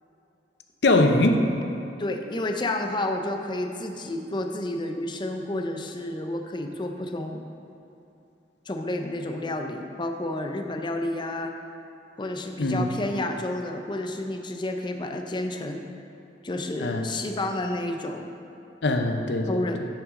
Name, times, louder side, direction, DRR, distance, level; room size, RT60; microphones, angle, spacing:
voice 1, 0.8-1.5 12.6-12.9 16.8-17.1 18.8-19.6, left 2 dB, 75° left, 5 dB, 0.7 m, -21 dB
voice 2, 2.0-7.4 8.7-11.5 12.2-15.8 16.4-18.3 19.5-19.9, left 1 dB, 25° left, 4 dB, 0.5 m, -30 dB
10.0 x 6.1 x 3.7 m, 2.8 s
head